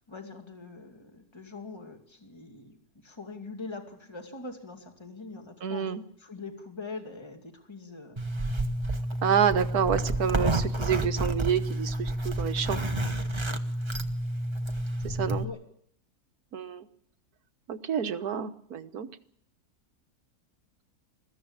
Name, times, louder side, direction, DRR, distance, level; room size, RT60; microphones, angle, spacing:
voice 1, 0.1-2.8 3.0-5.9 6.2-8.2 15.4-15.6, left 3 dB, 15° left, 4 dB, 2.5 m, -42 dB
voice 2, 5.6-6.0 9.2-12.8 15.0-15.5 16.5-16.9 17.7-19.1, right 8 dB, 70° right, 10 dB, 1.7 m, -28 dB
Zipper (clothing), 8.2-15.4, right 1 dB, 20° right, 1.2 m, -30 dB
22.0 x 15.0 x 8.8 m, 0.67 s
omnidirectional pair, 1.7 m